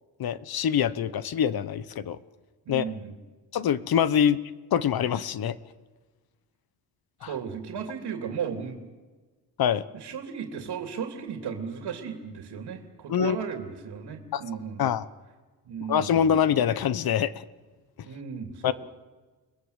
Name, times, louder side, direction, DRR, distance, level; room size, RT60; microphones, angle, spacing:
voice 1, 0.2-2.2 2.7-2.8 3.5-4.4 4.7-5.6 7.2-7.3 9.6-9.8 13.1-13.4 14.3-14.4 14.8-15.0 15.9-17.4 18.6-18.7, left 9 dB, 65° left, 15 dB, 1.1 m, -24 dB
voice 2, 2.7-3.2 7.2-8.9 9.9-14.9 15.7-16.2 18.0-18.7, right 7 dB, 80° right, 4 dB, 2.9 m, -35 dB
30.0 x 20.0 x 8.1 m, 1.4 s
wide cardioid pair, 135°, 39 cm